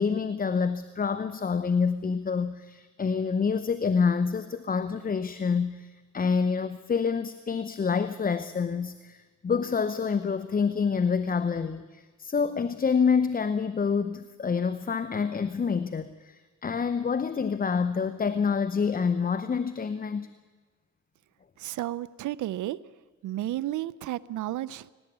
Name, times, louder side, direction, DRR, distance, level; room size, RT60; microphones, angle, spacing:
voice 1, 0.0-20.3, left 5 dB, 30° left, 12 dB, 0.9 m, -27 dB
voice 2, 21.6-22.8 23.2-24.9, right 14 dB, 75° right, 19 dB, 0.7 m, -32 dB
18.0 x 18.0 x 9.4 m, 1.4 s
cardioid pair, 90°, 30 cm